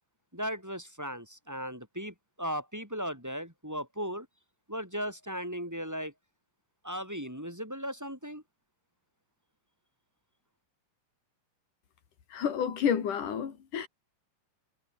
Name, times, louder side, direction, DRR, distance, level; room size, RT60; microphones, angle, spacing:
voice 1, 0.3-4.3 4.7-6.1 6.8-8.4, equal, 5° right, 6.9 m, -37 dB
voice 2, 12.3-13.9, left 8 dB, 70° left, 4.4 m, -30 dB
omnidirectional pair, 3.7 m